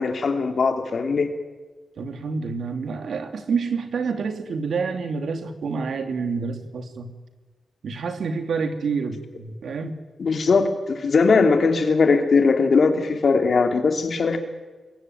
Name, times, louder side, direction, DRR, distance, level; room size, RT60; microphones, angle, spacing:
voice 1, 0.0-1.3 10.2-14.4, left 4 dB, 55° left, 6 dB, 2.9 m, -20 dB
voice 2, 2.0-7.1 7.8-10.0, right 5 dB, 75° right, 7 dB, 2.6 m, -28 dB
27.5 x 22.5 x 9.3 m, 1.3 s
wide cardioid pair, 145°, 0 cm